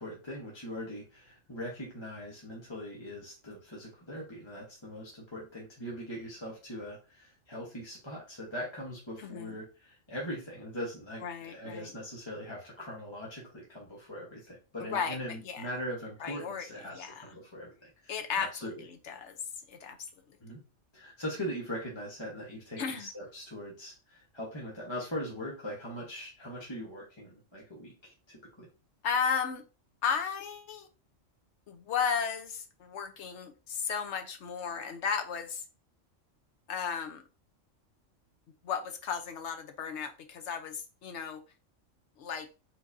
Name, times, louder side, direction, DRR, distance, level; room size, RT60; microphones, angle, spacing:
voice 1, 0.0-18.8 20.4-20.6 20.9-28.7, equal, 20° left, -4 dB, 1.2 m, -41 dB
voice 2, 9.2-9.6 11.2-11.9 14.8-15.2 15.4-15.7 16.2-16.6 16.9-17.2 18.1-18.7 19.1-19.4 19.7-20.0 22.8-23.1 29.0-29.6 30.0-30.9 31.7-35.6 36.7-37.2 38.6-41.4 42.2-42.5, left 6 dB, 65° left, 6 dB, 1.0 m, -34 dB
4.6 x 3.9 x 2.6 m, 0.33 s
omnidirectional pair, 1.3 m